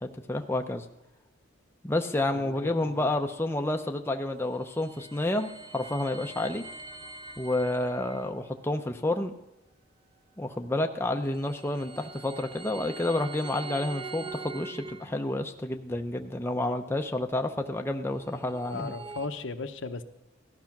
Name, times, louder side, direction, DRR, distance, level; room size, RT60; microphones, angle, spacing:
voice 1, 0.0-0.8 1.8-6.6 7.4-9.3 10.4-18.9, left 1 dB, 10° left, 4 dB, 0.7 m, -30 dB
voice 2, 2.3-3.1 16.5-16.7 18.5-20.0, left 3 dB, 70° left, 8 dB, 0.9 m, -37 dB
sound 1, 4.5-8.3 11.1-15.5 18.1-19.3, right 4 dB, 25° right, 0.9 m, -44 dB
17.0 x 13.0 x 6.0 m, 0.96 s
head